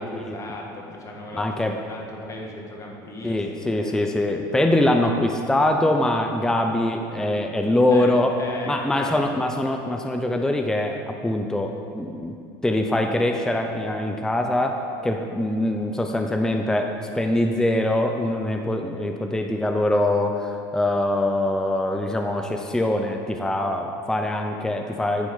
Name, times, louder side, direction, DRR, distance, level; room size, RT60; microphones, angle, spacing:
voice 1, 0.0-4.0 7.9-8.1 8.4-9.5, left 1 dB, 30° left, -1 dB, 1.8 m, -37 dB
voice 2, 1.3-1.7 3.2-8.4 8.7-12.3 12.6-25.3, left 1 dB, 5° left, 4 dB, 0.6 m, -23 dB
10.0 x 6.2 x 5.5 m, 2.6 s
supercardioid pair, 105°, 11 cm